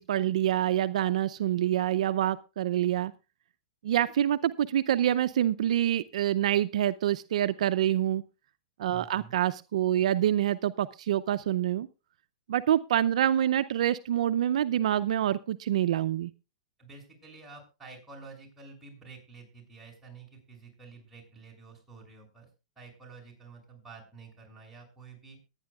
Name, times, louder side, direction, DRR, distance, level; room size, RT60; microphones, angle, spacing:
voice 1, 0.0-3.1 3.8-8.2 8.8-11.9 12.5-16.3, right 11 dB, 70° right, 12 dB, 0.6 m, -26 dB
voice 2, 8.9-9.3 16.8-22.5 22.7-25.4, right 4 dB, 5° right, -2 dB, 6.7 m, -49 dB
22.5 x 9.8 x 2.4 m, 0.29 s
hypercardioid pair, 145°, 4 cm